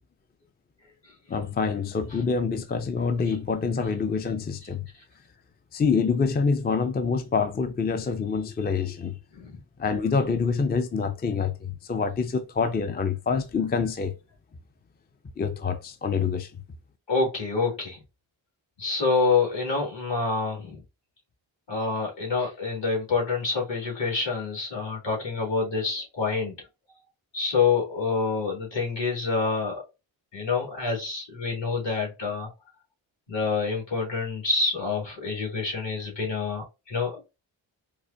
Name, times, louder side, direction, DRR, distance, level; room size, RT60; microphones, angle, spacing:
voice 1, 1.3-4.9 5.7-9.1 9.8-14.1 15.4-16.5, left 5 dB, 20° left, 0.4 m, -26 dB
voice 2, 17.1-18.0 18.8-20.8 21.7-26.6 27.3-29.8 30.3-32.5 33.3-37.4, left 4 dB, 60° left, 2.1 m, -27 dB
4.7 x 2.1 x 2.6 m
cardioid pair, 55°, 49 cm